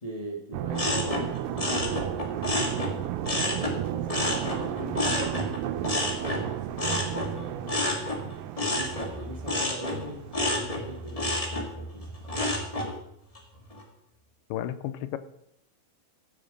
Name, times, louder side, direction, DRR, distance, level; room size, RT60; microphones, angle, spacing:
voice 1, 0.0-5.9 6.4-8.0 8.6-12.1, right 1 dB, 45° left, -1 dB, 0.4 m, -41 dB
sound 1, 0.5-11.9 12.3-12.4, right 13 dB, 85° right, 2.3 m, -34 dB
sound 2, 0.7-3.8 4.1-12.9 13.3-13.8, left 1 dB, 15° left, 1.4 m, -30 dB
voice 2, 14.5-15.2, left 12 dB, 85° left, 11 dB, 2.3 m, -32 dB
16.0 x 7.2 x 5.0 m, 0.74 s
omnidirectional pair, 3.9 m